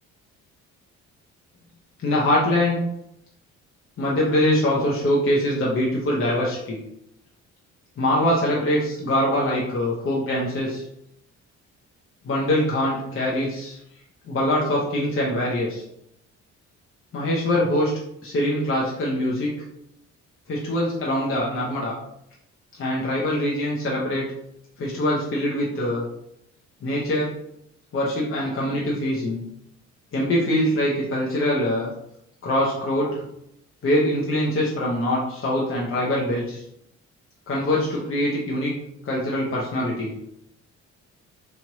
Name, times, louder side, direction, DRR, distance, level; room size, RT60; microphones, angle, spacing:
voice 1, 2.0-2.8 4.0-6.8 8.0-10.8 12.2-13.8 14.3-15.8 17.1-17.9 18.2-19.5 20.5-21.9 22.8-24.2 24.8-26.0 26.8-27.3 27.9-29.4 30.1-31.9 32.4-33.2 33.8-36.6 37.5-38.7 39.0-40.1, left 1 dB, 45° left, -4 dB, 0.8 m, -23 dB
3.1 x 2.4 x 2.9 m, 0.78 s
cardioid pair, 90°, 30 cm